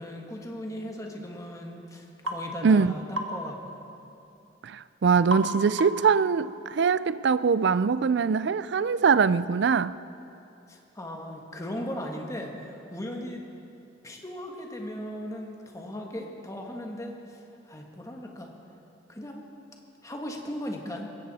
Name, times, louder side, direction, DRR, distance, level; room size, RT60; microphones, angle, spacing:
voice 1, 0.0-3.6 10.7-13.5 14.0-18.5 19.1-19.5 20.0-21.1, equal, 15° left, 1.6 m, -37 dB
African Claves, 2.3-2.4 3.2-3.4 5.3-5.5 5.8-6.1, equal, 90° right, 1.5 m, -31 dB
voice 2, 2.6-2.9 4.6-9.9, right 5 dB, 60° right, 0.4 m, -23 dB
20.0 x 16.0 x 4.2 m
head